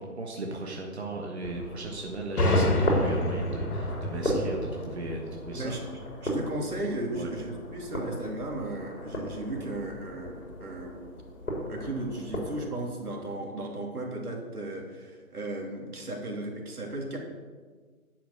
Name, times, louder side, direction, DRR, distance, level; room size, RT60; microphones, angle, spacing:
voice 1, 0.0-5.7 7.2-7.3, right 2 dB, 45° right, 0 dB, 1.3 m, -37 dB
sound 1, 1.4-12.7, equal, 65° left, 3.1 m, -35 dB
sound 2, 2.4-6.0, left 1 dB, 85° left, 2.0 m, -28 dB
voice 2, 5.5-11.0 11.7-17.2, right 1 dB, 85° right, 0 dB, 3.1 m, -36 dB
10.5 x 5.9 x 6.6 m, 1.5 s
hypercardioid pair, 180°, 44 cm